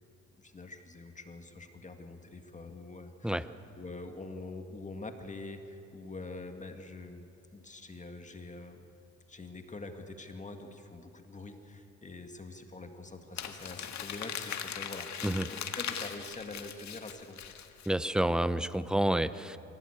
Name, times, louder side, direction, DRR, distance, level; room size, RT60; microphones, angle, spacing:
voice 1, 0.4-3.4 3.8-7.3 7.5-8.9 9.3-17.4, left 2 dB, 25° left, 6 dB, 1.9 m, -45 dB
Crumpling crinkling, 13.4-17.9, left 8 dB, 65° left, 1.7 m, -39 dB
voice 2, 17.9-19.6, right 1 dB, 5° right, 14 dB, 0.7 m, -29 dB
24.5 x 16.5 x 8.7 m, 2.8 s
cardioid pair, 90°, 30 cm